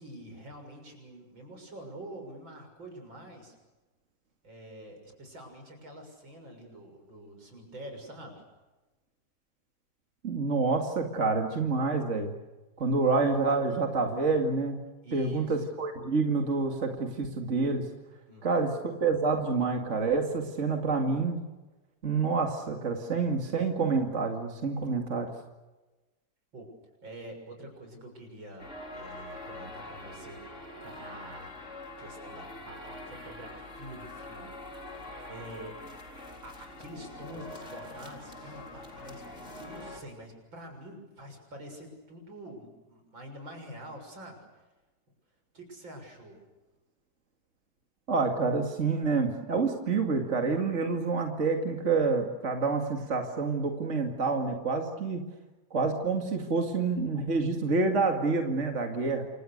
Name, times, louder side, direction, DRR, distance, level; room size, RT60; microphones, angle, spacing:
voice 1, 0.0-3.5 4.4-8.4 15.0-15.6 18.3-18.8 26.5-26.7 27.0-30.4 30.8-31.6 32.0-35.8 36.4-39.3 39.6-44.4 45.5-46.4, right 1 dB, 75° right, 4 dB, 7.5 m, -46 dB
voice 2, 10.2-12.3 12.8-14.8 15.1-17.9 18.4-18.7 19.0-21.4 22.0-25.3 48.1-55.2 55.7-59.3, right 4 dB, 40° right, 3 dB, 2.5 m, -28 dB
sound 1, 28.6-40.0, left 2 dB, 35° left, 4.3 m, -44 dB
28.5 x 26.0 x 6.7 m, 1.1 s
omnidirectional pair, 2.1 m